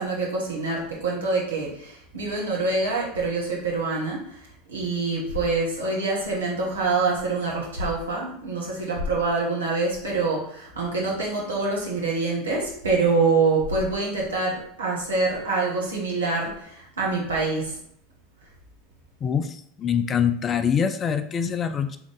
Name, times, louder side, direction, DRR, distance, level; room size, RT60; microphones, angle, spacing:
voice 1, 0.0-17.8, right 3 dB, 75° right, -4 dB, 1.5 m, -25 dB
voice 2, 19.2-22.0, left 7 dB, 30° left, 10 dB, 0.4 m, -24 dB
3.6 x 3.4 x 3.8 m, 0.70 s
figure-of-eight pair, 80°, 0 cm